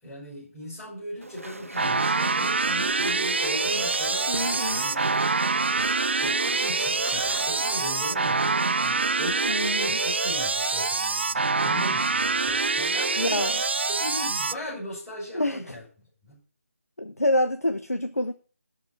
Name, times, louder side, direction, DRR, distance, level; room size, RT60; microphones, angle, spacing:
voice 1, 0.0-4.3 4.7-5.0 6.1-15.8 16.2-16.4, left 1 dB, 5° left, -14 dB, 5.3 m, -38 dB
Walk footsteps / Chatter / Squeak, 1.2-8.9, right 2 dB, 65° right, 1.1 m, -39 dB
sound 1, 1.8-14.5, right 4 dB, 45° right, 0.4 m, -25 dB
voice 2, 4.3-4.9 9.5-10.0 13.2-13.5 15.3-15.8 17.0-18.3, left 1 dB, 80° left, 8 dB, 1.0 m, -27 dB
12.0 x 5.2 x 7.6 m, 0.40 s
figure-of-eight pair, 155°, 8 cm